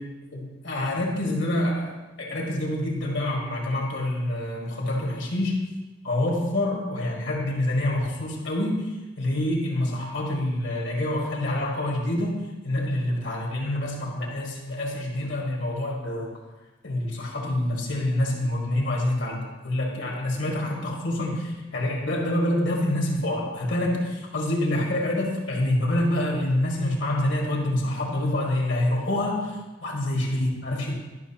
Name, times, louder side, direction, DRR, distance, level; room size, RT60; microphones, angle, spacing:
voice 1, 0.3-5.7 6.0-16.3 16.8-30.9, left 1 dB, 70° left, -1 dB, 1.9 m, -27 dB
12.0 x 6.1 x 2.9 m, 1.1 s
head